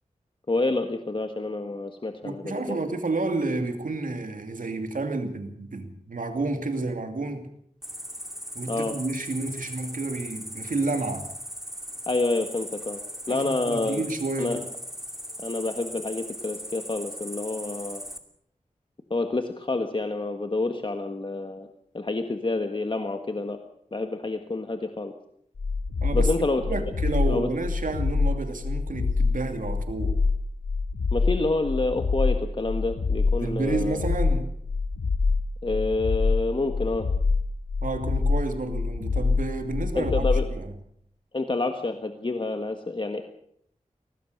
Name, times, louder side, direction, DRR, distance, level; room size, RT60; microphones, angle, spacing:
voice 1, 0.5-2.8 8.7-8.9 12.1-13.0 13.3-14.0 14.4-14.6 15.4-18.0 19.1-21.7 21.9-23.6 23.9-25.1 26.1-26.6 27.3-27.5 31.1-34.0 35.6-37.1 39.9-40.5 41.3-43.2, left 2 dB, 40° left, 6 dB, 1.6 m, -28 dB
voice 2, 2.2-7.5 8.5-11.3 13.3-14.6 26.0-30.2 33.3-34.5 37.8-40.7, right 3 dB, 80° right, 6 dB, 2.7 m, -30 dB
Cricket, 7.8-18.2, equal, 5° right, 2.7 m, -39 dB
sound 1, 25.6-40.5, left 4 dB, 85° left, 1.3 m, -25 dB
23.5 x 18.5 x 6.7 m, 0.69 s
wide cardioid pair, 90°, 14 cm